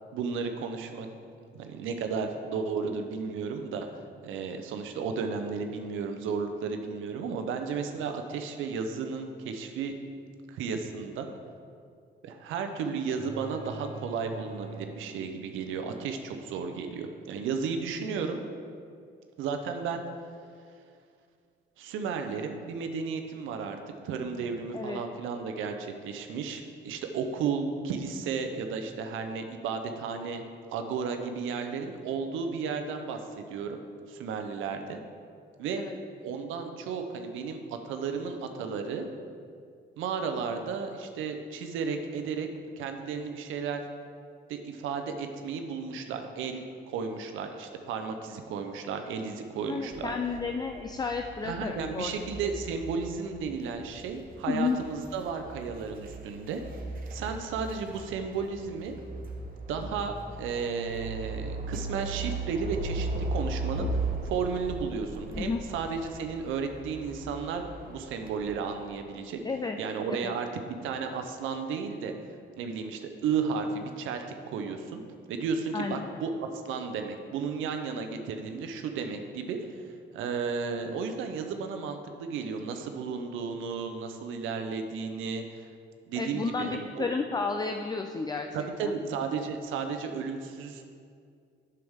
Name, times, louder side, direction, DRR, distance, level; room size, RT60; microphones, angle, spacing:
voice 1, 0.1-1.1 1.5-3.9 4.2-9.9 10.5-11.3 12.2-18.4 19.4-20.0 21.8-23.8 24.0-30.4 30.7-33.8 34.1-35.0 35.6-35.8 36.2-37.6 37.8-39.1 40.0-42.5 42.8-43.8 44.5-50.1 51.4-56.6 57.1-58.9 59.7-69.4 69.8-72.1 72.6-75.0 75.3-76.3 76.6-79.8 80.1-85.7 86.1-87.1 88.5-90.9, right 5 dB, 90° right, 6 dB, 0.6 m, -33 dB
sound 1, 13.2-15.7, right 3 dB, 30° right, 0.7 m, -43 dB
voice 2, 49.7-52.5 54.5-54.8 65.3-65.6 69.4-69.8 70.1-70.3 75.7-76.1 86.2-88.9, left 4 dB, 20° left, 5 dB, 0.4 m, -32 dB
sound 2, 49.8-68.6, right 2 dB, 45° right, 1.1 m, -38 dB
7.8 x 6.9 x 3.5 m, 2.3 s
cardioid pair, 90°, 20 cm